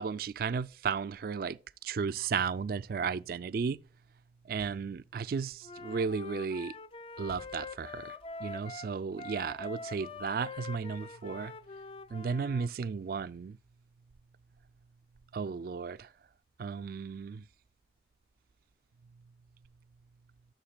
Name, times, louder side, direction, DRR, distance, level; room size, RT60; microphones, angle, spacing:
voice 1, 0.0-3.8 4.5-6.7 7.2-8.1 8.4-11.5 12.1-13.6 15.3-16.1 16.6-17.4, right 5 dB, 50° right, 0.3 m, -34 dB
sound 1, 4.6-5.2 7.3-8.3, equal, 55° left, 2.3 m, -56 dB
Wind instrument woodwind instrument, 5.6-12.7, left 3 dB, 30° left, 0.3 m, -44 dB
11.5 x 7.1 x 2.3 m
head